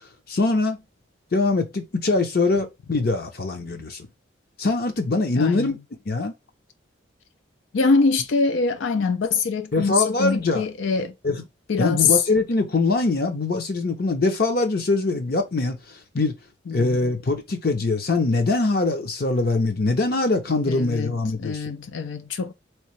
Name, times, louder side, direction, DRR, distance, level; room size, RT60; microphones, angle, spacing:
voice 1, 0.3-0.8 1.3-4.0 4.6-5.8 6.1-6.3 9.7-10.7 11.2-11.4 11.8-15.8 16.1-16.3 16.7-21.6, left 3 dB, 50° left, 0.7 m, -23 dB
voice 2, 5.3-5.7 7.7-11.1 11.7-12.2 16.7-17.0 20.7-22.5, left 4 dB, 80° left, 0.5 m, -23 dB
3.6 x 3.1 x 3.1 m
head